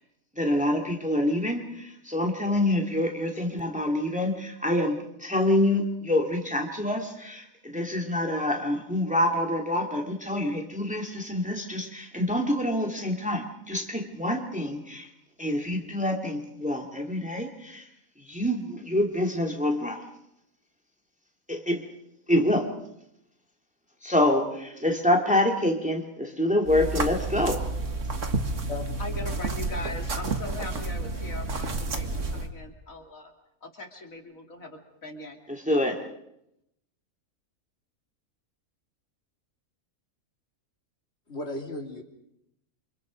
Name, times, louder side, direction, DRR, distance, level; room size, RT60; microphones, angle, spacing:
voice 1, 0.4-15.1 15.4-17.8 18.3-20.0 21.5-21.8 22.3-22.7 24.0-27.6 35.5-36.0, left 1 dB, 5° right, 1 dB, 2.6 m, -26 dB
sound 1, 26.7-32.5, right 3 dB, 60° right, 2.1 m, -30 dB
voice 2, 29.0-33.3 33.6-35.4 35.7-36.0, left 2 dB, 70° left, 3 dB, 3.0 m, -40 dB
voice 3, 41.3-42.0, left 2 dB, 50° left, 2 dB, 3.4 m, -35 dB
28.5 x 26.0 x 5.3 m, 0.80 s
omnidirectional pair, 1.5 m